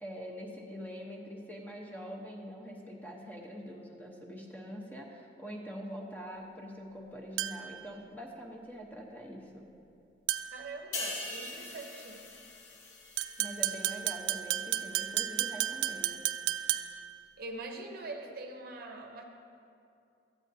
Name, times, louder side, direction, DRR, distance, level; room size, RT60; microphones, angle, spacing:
voice 1, 0.0-9.7 13.4-16.2, equal, 10° left, -1 dB, 0.9 m, -44 dB
sound 1, 7.4-7.8 10.3-10.7 13.2-17.1, right 13 dB, 75° right, 0.4 m, -33 dB
voice 2, 10.5-12.3 17.4-19.2, right 2 dB, 55° right, 3 dB, 0.7 m, -43 dB
sound 2, 10.9-14.5 14.8-15.1, left 2 dB, 80° left, 1.0 m, -42 dB
12.5 x 8.5 x 2.7 m, 2.6 s
head